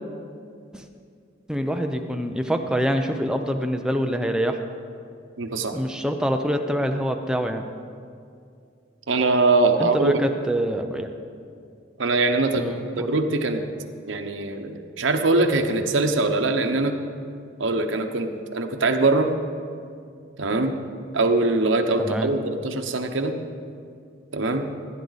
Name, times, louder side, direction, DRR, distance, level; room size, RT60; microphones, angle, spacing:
voice 1, 1.5-4.6 5.7-7.7 9.8-11.1 12.6-13.2 22.0-22.3, equal, 5° right, 5 dB, 0.6 m, -25 dB
voice 2, 5.4-5.8 9.1-10.1 12.0-13.7 14.1-16.9 17.6-19.3 20.4-20.7 21.1-23.3 24.3-24.7, right 3 dB, 85° right, 5 dB, 0.9 m, -22 dB
16.5 x 10.0 x 4.1 m, 2.4 s
head